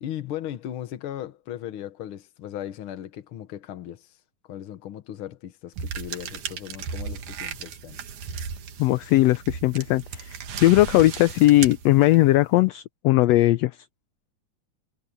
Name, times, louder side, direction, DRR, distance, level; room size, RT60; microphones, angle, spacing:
voice 1, 0.0-4.2 4.4-8.0, left 11 dB, 55° left, 1.6 m, -37 dB
sound 1, 5.8-12.4, right 6 dB, 80° right, 3.2 m, -35 dB
voice 2, 8.8-13.7, left 16 dB, 75° left, 1.5 m, -19 dB
omnidirectional pair, 3.5 m